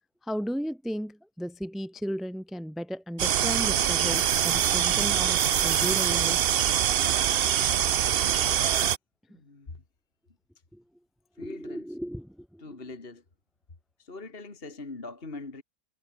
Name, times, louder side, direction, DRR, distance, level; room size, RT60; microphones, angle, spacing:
voice 1, 0.2-6.4 9.3-9.4 10.7-10.8 11.4-12.8, equal, ahead, 1.6 m, -35 dB
sound 1, 3.2-9.0, right 10 dB, 60° right, 0.6 m, -24 dB
voice 2, 9.3-9.8 11.4-11.8 12.6-13.2 14.0-15.6, left 3 dB, 35° left, 2.7 m, -42 dB
omnidirectional pair, 1.7 m